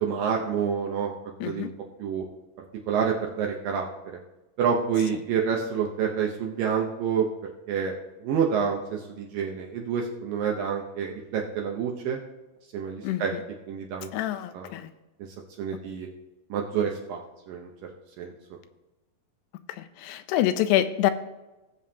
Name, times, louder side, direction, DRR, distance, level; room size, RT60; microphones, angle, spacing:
voice 1, 0.0-1.1 1.4-1.7 2.0-2.2 2.9-3.9 4.6-7.3 7.7-12.2 12.7-13.3 13.7-14.1 14.5-14.7 15.6-16.1 16.5-17.2 17.5-17.7 18.2-18.3, right 7 dB, 75° right, 0 dB, 2.3 m, -28 dB
voice 2, 1.4-1.7 13.0-13.2 14.1-14.9 20.0-21.1, left 12 dB, 90° left, 11 dB, 2.7 m, -25 dB
19.0 x 7.3 x 2.8 m, 1.1 s
omnidirectional pair, 4.7 m